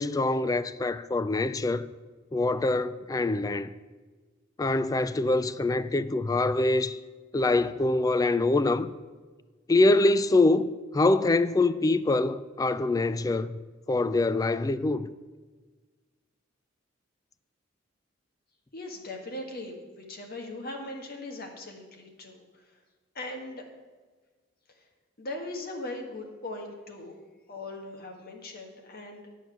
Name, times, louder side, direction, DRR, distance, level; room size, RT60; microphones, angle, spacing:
voice 1, 0.0-1.9 2.3-3.7 4.6-7.0 7.3-8.9 9.7-13.6 13.9-15.1, left 2 dB, 20° left, 0.3 m, -24 dB
voice 2, 18.7-22.8 23.1-23.7 24.7-24.9 25.2-27.1 27.5-29.3, left 2 dB, 50° left, 1.6 m, -39 dB
9.1 x 8.1 x 5.9 m
head